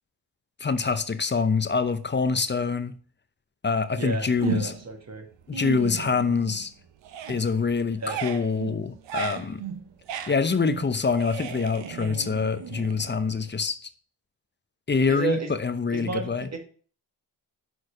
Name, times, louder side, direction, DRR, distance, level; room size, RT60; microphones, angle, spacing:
voice 1, 0.6-2.9 3.6-4.7 5.5-6.7 7.3-9.6 10.3-13.8 14.9-16.5, left 5 dB, 25° left, 0.8 m, -25 dB
voice 2, 3.9-5.3 8.0-8.2 15.1-15.5 15.9-16.6, right 4 dB, 35° right, 1.7 m, -32 dB
sound 1, 4.4-5.0 5.3-6.7 7.0-13.5, right 9 dB, 75° right, 0.8 m, -36 dB
6.5 x 4.6 x 5.0 m
cardioid pair, 60°, 44 cm